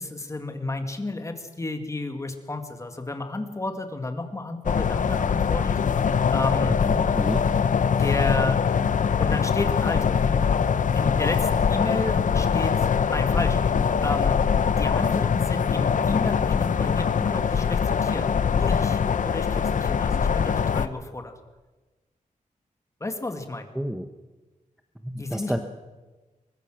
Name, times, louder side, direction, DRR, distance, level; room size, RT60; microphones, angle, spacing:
voice 1, 0.0-6.8 8.0-8.6 9.2-10.5 10.9-14.4 14.8-21.3 23.0-23.7 25.2-25.6, left 2 dB, 20° left, 6 dB, 2.2 m, -32 dB
sound 1, 4.6-20.9, left 6 dB, 70° left, 0.9 m, -23 dB
voice 2, 6.6-7.5 23.7-24.1 25.0-25.6, equal, 5° right, 6 dB, 1.0 m, -29 dB
23.5 x 21.0 x 6.3 m, 1.2 s
wide cardioid pair, 150°, 14 cm